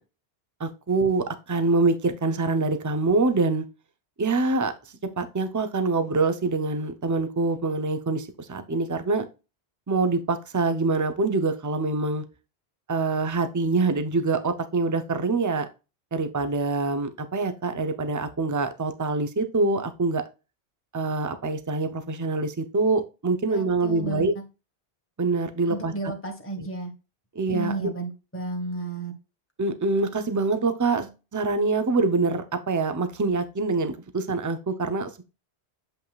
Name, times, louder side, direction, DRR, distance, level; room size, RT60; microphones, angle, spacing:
voice 1, 0.6-3.7 4.2-9.2 9.9-12.2 12.9-15.7 16.1-20.2 20.9-24.3 25.2-25.9 26.6-26.7 27.3-27.9 29.6-35.2, right 3 dB, 20° right, 9 dB, 0.6 m, -25 dB
voice 2, 23.5-24.3 25.7-26.9 27.5-29.1, right 3 dB, 10° left, 2 dB, 1.6 m, -32 dB
7.9 x 5.5 x 2.4 m, 0.29 s
omnidirectional pair, 1.1 m